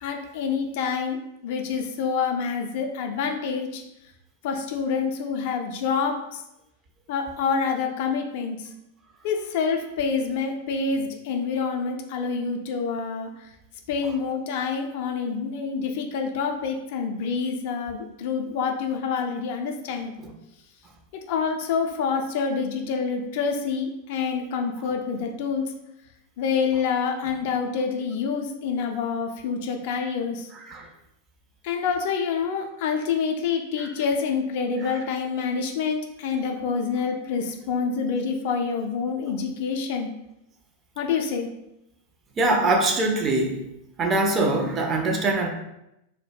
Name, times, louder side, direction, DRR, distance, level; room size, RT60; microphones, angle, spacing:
voice 1, 0.0-3.8 4.4-6.2 7.1-8.6 9.2-13.3 13.9-20.1 21.3-25.6 26.4-30.5 31.6-40.1 41.0-41.5, left 5 dB, 50° left, 3 dB, 0.3 m, -27 dB
voice 2, 30.5-30.9 33.8-33.9 34.8-34.9 42.4-43.6 44.0-45.5, right 2 dB, 25° right, 2 dB, 0.4 m, -23 dB
2.1 x 2.0 x 3.2 m, 0.86 s
figure-of-eight pair, 90°, 0 cm